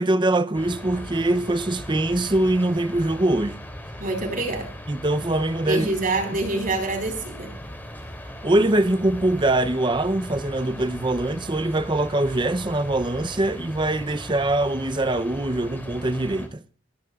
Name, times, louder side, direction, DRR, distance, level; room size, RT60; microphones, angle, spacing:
voice 1, 0.0-3.6 4.9-5.9 8.4-16.6, right 1 dB, 25° right, 0.6 m, -23 dB
sound 1, 0.5-16.5, equal, 10° left, 2.9 m, -38 dB
voice 2, 4.0-4.7 5.7-7.5, right 2 dB, 45° right, 4.6 m, -26 dB
27.0 x 12.0 x 2.4 m
head